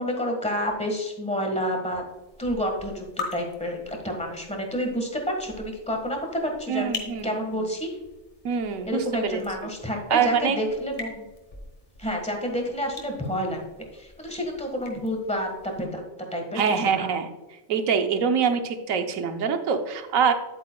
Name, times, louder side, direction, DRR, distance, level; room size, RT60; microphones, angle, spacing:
voice 1, 0.0-2.0 2.4-6.9 7.2-8.0 8.9-11.2 12.0-13.6 13.9-16.0 16.3-16.6 17.0-17.1, equal, 5° left, 2 dB, 1.4 m, -29 dB
sound 1, 2.1-15.9, left 4 dB, 35° left, 1.4 m, -43 dB
voice 2, 6.7-7.4 8.4-9.4 10.1-10.6 16.5-17.3 17.7-20.3, right 6 dB, 80° right, 7 dB, 1.2 m, -24 dB
10.0 x 8.6 x 2.3 m, 1.1 s
omnidirectional pair, 1.4 m